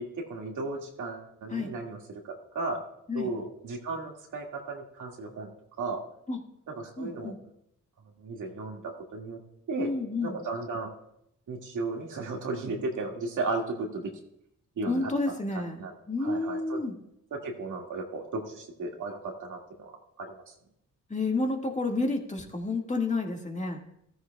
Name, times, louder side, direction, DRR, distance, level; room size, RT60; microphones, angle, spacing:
voice 1, 0.0-2.0 2.2-2.8 3.1-5.5 5.8-6.0 6.7-7.3 8.2-9.4 9.7-9.9 10.2-10.9 11.5-14.1 14.8-15.1 15.5-15.9 16.2-16.8 17.3-19.9 20.2-20.5, right 3 dB, 75° right, 0 dB, 2.1 m, -35 dB
voice 2, 7.0-7.4 9.8-10.4 14.9-17.0 21.1-23.8, left 3 dB, 25° left, 1 dB, 1.9 m, -30 dB
14.0 x 13.5 x 2.3 m, 0.76 s
cardioid pair, 75°, 31 cm